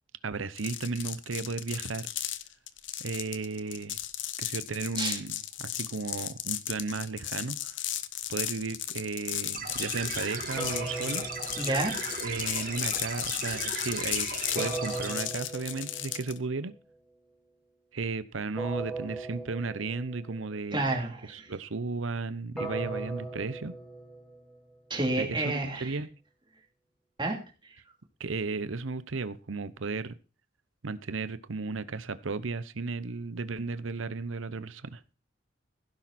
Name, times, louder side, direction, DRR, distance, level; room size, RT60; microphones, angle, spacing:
voice 1, 0.2-2.1 3.0-4.0 4.4-7.8 8.3-11.3 12.2-14.3 14.5-16.7 17.9-21.0 21.3-23.7 25.2-26.1 28.2-30.1 30.8-35.0, right 4 dB, 85° right, 15 dB, 0.8 m, -34 dB
sound 1, 0.6-16.4, left 13 dB, 70° left, 1.0 m, -35 dB
sound 2, 9.5-15.1, right 5 dB, 45° right, 4.0 m, -37 dB
sound 3, 10.6-12.6 14.6-16.4 18.6-20.4 22.6-24.8, right 2 dB, 5° left, 4.2 m, -38 dB
voice 2, 11.6-11.9 20.7-21.5 24.9-25.9 27.2-27.4, right 2 dB, 25° right, 1 dB, 3.1 m, -30 dB
16.0 x 10.5 x 4.3 m, 0.34 s
head